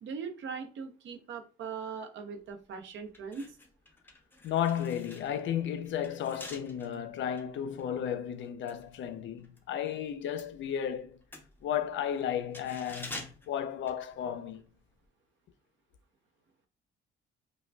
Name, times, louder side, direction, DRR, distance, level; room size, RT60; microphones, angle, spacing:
voice 1, 0.0-3.6, right 6 dB, 70° right, 0.7 m, -40 dB
sound 1, 2.5-2.6 3.1-9.7 10.0-14.6 14.9-15.1, left 2 dB, 10° left, 0.7 m, -49 dB
voice 2, 4.4-11.2 11.6-14.7, left 9 dB, 70° left, 0.5 m, -33 dB
4.9 x 2.2 x 2.2 m
cardioid pair, 90°, 20 cm